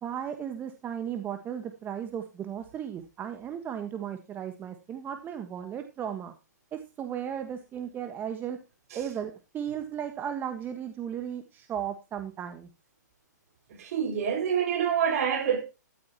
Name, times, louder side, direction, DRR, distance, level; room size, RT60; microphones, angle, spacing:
voice 1, 0.0-6.3 6.7-8.6 8.9-12.7, right 9 dB, 20° right, 1.4 m, -35 dB
voice 2, 13.8-15.6, right 8 dB, 55° right, 4.6 m, -26 dB
13.5 x 12.0 x 2.9 m
hypercardioid pair, 130°, 10 cm